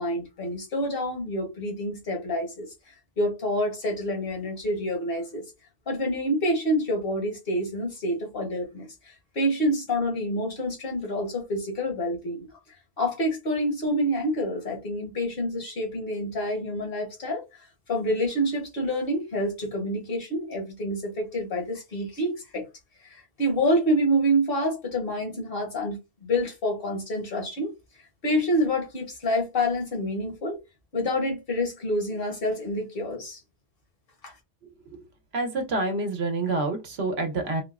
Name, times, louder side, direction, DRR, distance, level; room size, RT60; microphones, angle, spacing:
voice 1, 0.0-2.7 3.2-5.5 5.9-8.9 9.3-12.5 13.0-17.4 17.9-22.7 23.1-27.7 28.2-30.6 30.9-33.4 34.2-34.3, equal, 60° left, 1.2 m, -27 dB
voice 2, 35.3-37.6, right 2 dB, 75° right, 1.0 m, -27 dB
3.7 x 2.0 x 2.3 m
omnidirectional pair, 1.1 m